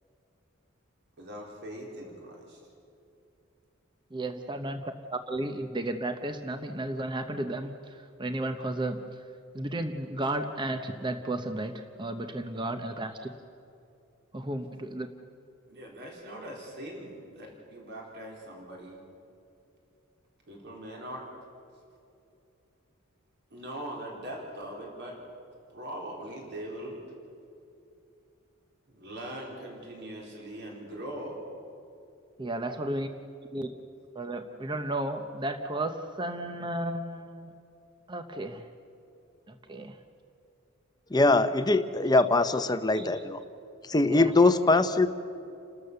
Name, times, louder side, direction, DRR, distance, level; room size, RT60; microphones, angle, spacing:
voice 1, 1.2-2.6 12.8-13.0 15.7-19.0 20.5-21.3 23.5-25.2 25.7-27.0 28.9-31.4, right 1 dB, 55° right, -1 dB, 4.2 m, -41 dB
voice 2, 4.1-9.0 9.5-11.7 12.0-13.2 14.3-15.1 32.4-33.1 33.5-33.7 34.1-37.5 38.1-38.7 39.5-40.0 42.9-43.1 44.1-44.3, right 1 dB, 20° right, 7 dB, 0.8 m, -33 dB
voice 3, 41.1-43.4 43.8-45.1, left 2 dB, 20° left, 10 dB, 0.8 m, -22 dB
30.0 x 13.0 x 6.9 m, 2.7 s
head